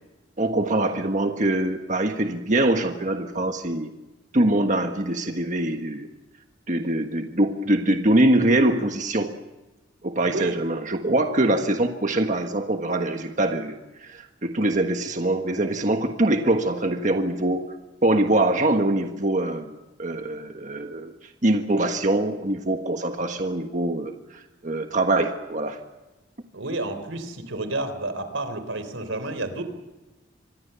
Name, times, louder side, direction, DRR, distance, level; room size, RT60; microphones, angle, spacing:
voice 1, 0.4-3.9 4.3-6.1 6.7-9.3 10.0-17.7 18.0-21.1 21.4-25.8, right 1 dB, 40° right, 5 dB, 1.5 m, -23 dB
voice 2, 10.2-10.5 26.5-29.6, right 2 dB, 85° right, 10 dB, 3.7 m, -30 dB
26.0 x 21.5 x 7.0 m, 1.1 s
head